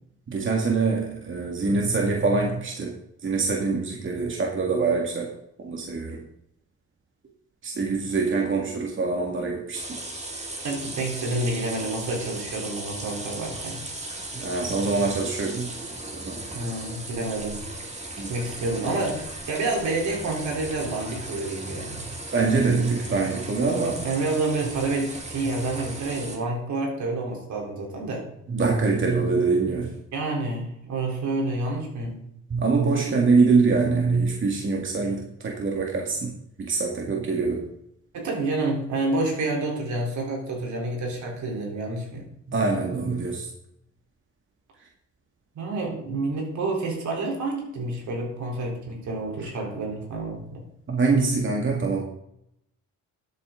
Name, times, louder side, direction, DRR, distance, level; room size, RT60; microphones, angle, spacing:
voice 1, 0.3-2.9 3.2-6.2 7.6-10.0 14.3-15.7 16.1-16.4 18.2-18.3 22.3-24.1 28.5-30.0 32.0-32.1 32.5-36.3 36.6-37.6 42.5-43.5 50.9-52.0, right 4 dB, 40° right, -1 dB, 2.2 m, -24 dB
sound 1, 9.7-26.4, right 2 dB, 20° right, 2.3 m, -37 dB
voice 2, 10.6-13.8 16.5-17.6 18.3-22.1 24.0-28.3 30.1-32.2 38.1-42.3 45.6-50.6, right 2 dB, 70° right, 0 dB, 3.9 m, -29 dB
12.5 x 8.6 x 3.9 m, 0.76 s
cardioid pair, 90°, 30 cm